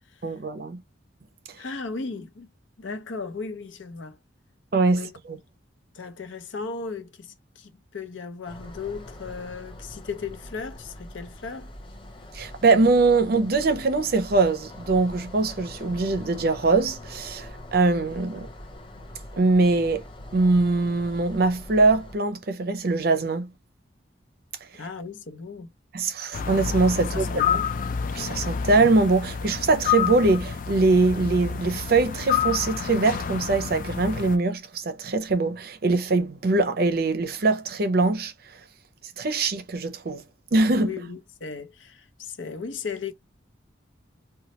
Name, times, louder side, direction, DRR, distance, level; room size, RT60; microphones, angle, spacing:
voice 1, 0.2-0.8 4.7-5.4 12.3-18.5 19.4-20.0 20.3-23.5 25.9-27.3 28.1-38.3 39.2-40.2 40.5-40.9, right 3 dB, 55° right, 0.5 m, -22 dB
voice 2, 1.6-2.5 2.8-4.2 4.9-5.1 5.9-11.7 24.8-25.7 27.0-27.8 40.8-43.1, left 4 dB, 90° left, 0.7 m, -36 dB
sound 1, 8.4-22.2, left 1 dB, 25° left, 0.7 m, -43 dB
sound 2, 26.3-34.4, left 7 dB, 45° left, 0.3 m, -29 dB
3.0 x 2.2 x 2.9 m
head